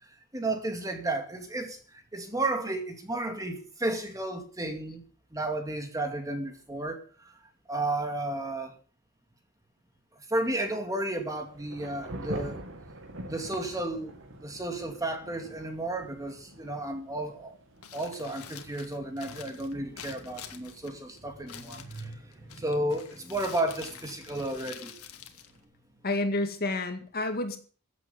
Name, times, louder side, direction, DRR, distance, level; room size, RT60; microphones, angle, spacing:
voice 1, 0.3-5.0 5.3-7.3 7.7-8.7 10.2-12.6 13.3-17.6 17.9-25.0, right 2 dB, 15° right, 2.4 m, -33 dB
Thunder / Rain, 11.2-25.6, right 1 dB, 60° right, 2.7 m, -46 dB
Crumpling crinkling, 17.7-26.2, left 8 dB, 75° left, 1.9 m, -48 dB
voice 2, 26.0-27.6, left 2 dB, 45° left, 2.1 m, -29 dB
15.5 x 8.2 x 7.1 m
head